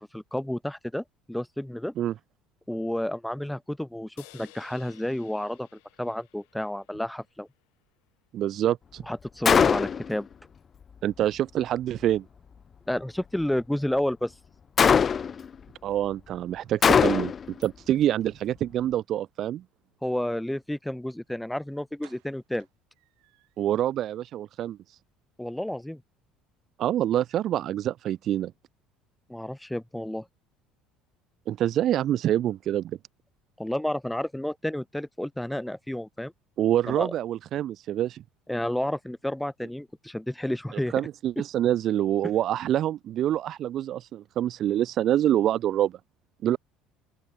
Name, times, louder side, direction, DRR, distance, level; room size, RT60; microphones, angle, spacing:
voice 1, 0.1-1.9 2.7-5.7 6.0-7.5 9.1-10.3 12.9-14.3 20.0-22.7 25.4-26.0 29.3-30.3 33.6-36.3 36.9-37.1 38.5-40.9, left 1 dB, 5° left, 1.2 m, -31 dB
sound 1, 4.2-7.6, left 39 dB, 85° left, 5.8 m, -55 dB
voice 2, 8.3-9.0 11.0-12.2 15.8-17.3 17.6-19.6 23.6-24.8 26.8-28.5 31.5-33.0 36.6-38.2 40.9-46.0 46.4-46.6, right 12 dB, 55° right, 0.4 m, -26 dB
Gunshot gunfire, 9.4-10.1 14.8-15.4 16.8-17.5, left 7 dB, 35° left, 0.4 m, -20 dB
sound 2, 22.0-23.8 24.1-24.2 24.6-24.8 25.0-25.1, right 31 dB, 80° right, 7.7 m, -60 dB
open air
supercardioid pair, 100°, 0 cm